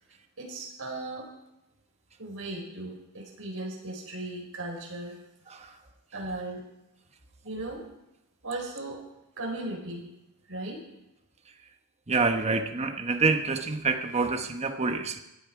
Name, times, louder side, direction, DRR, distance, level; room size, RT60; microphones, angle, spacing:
voice 1, 0.4-1.3 2.2-5.2 6.1-6.7 7.4-7.8 8.4-9.0 9.3-10.1 10.5-10.8, right 2 dB, 70° right, -1 dB, 4.8 m, -37 dB
voice 2, 12.1-15.2, right 4 dB, 30° right, 6 dB, 1.0 m, -27 dB
17.0 x 10.5 x 4.8 m, 0.89 s
head